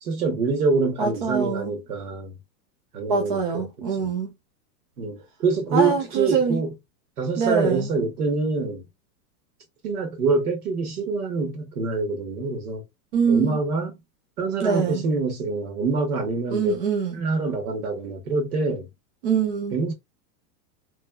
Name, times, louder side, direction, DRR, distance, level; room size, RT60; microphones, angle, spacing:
voice 1, 0.0-2.4 2.9-3.6 4.0-4.1 5.0-6.7 7.2-8.8 9.8-12.8 13.3-13.9 14.4-16.8 17.1-18.9 19.7-19.9, right 4 dB, 65° right, 1.4 m, -25 dB
voice 2, 1.0-1.7 3.1-4.3 5.7-6.6 7.4-7.9 13.1-13.6 14.6-15.0 16.5-17.1 19.2-19.8, right 5 dB, 35° right, 0.5 m, -24 dB
3.1 x 2.3 x 2.2 m
supercardioid pair, 170°, 49 cm